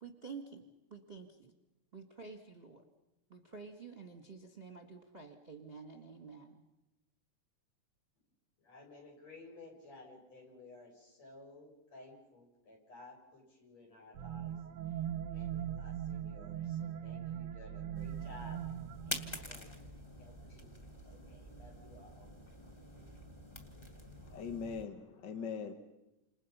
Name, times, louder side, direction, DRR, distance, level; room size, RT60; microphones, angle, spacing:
voice 1, 0.0-1.5 1.9-2.9 3.3-6.6, right 5 dB, 25° right, 4 dB, 1.7 m, -50 dB
voice 2, 8.6-14.6 14.9-15.0 15.3-18.6 19.0-20.7 21.0-22.3, left 2 dB, 60° left, 0 dB, 8.1 m, -56 dB
sound 1, 14.1-19.4, right 10 dB, 60° right, 1.7 m, -40 dB
sound 2, 17.9-24.9, equal, 10° left, 1.9 m, -47 dB
voice 3, 24.3-25.7, left 6 dB, 45° left, 6 dB, 1.8 m, -41 dB
29.5 x 27.5 x 5.7 m, 0.95 s
omnidirectional pair, 3.3 m